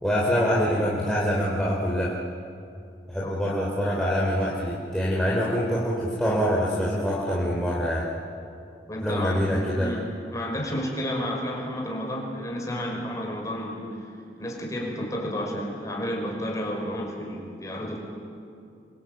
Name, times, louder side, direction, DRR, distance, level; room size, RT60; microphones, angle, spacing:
voice 1, 0.0-2.2 3.1-8.1 9.0-10.0, equal, 5° left, -6 dB, 3.3 m, -25 dB
voice 2, 3.2-3.5 8.9-13.9 14.4-18.0, equal, 20° left, 0 dB, 5.3 m, -31 dB
28.0 x 23.5 x 9.1 m, 2.5 s
head